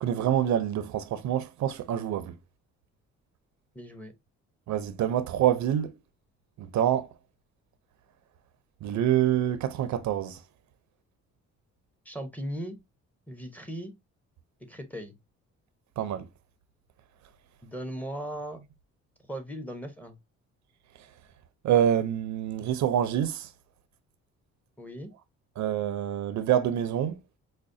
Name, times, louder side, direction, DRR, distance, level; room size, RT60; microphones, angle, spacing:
voice 1, 0.0-2.3 4.7-5.9 6.6-7.1 8.8-10.4 16.0-16.3 21.6-23.5 25.6-27.2, right 10 dB, 70° right, 0.5 m, -26 dB
voice 2, 3.7-4.1 12.0-12.8 13.3-14.0 14.6-15.2 17.6-18.6 19.3-20.2 24.8-25.1, equal, 5° left, 0.8 m, -38 dB
4.9 x 2.1 x 2.6 m
cardioid pair, 90°, 30 cm